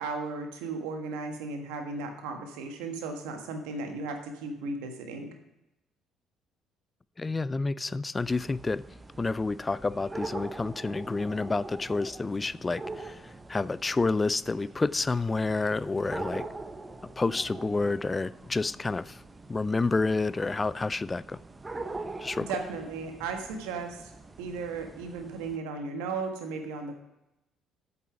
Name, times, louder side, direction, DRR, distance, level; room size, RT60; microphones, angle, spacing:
voice 1, 0.0-5.3 22.4-24.1 24.4-26.9, right 4 dB, 80° right, 4 dB, 1.5 m, -35 dB
voice 2, 7.2-8.8 9.2-16.4 17.2-19.2 19.5-21.4 22.2-22.5, left 3 dB, 25° left, 18 dB, 0.3 m, -29 dB
sound 1, 8.2-25.6, right 2 dB, 25° right, 0.8 m, -43 dB
8.4 x 6.9 x 5.8 m, 0.91 s
hypercardioid pair, 55°, 0 cm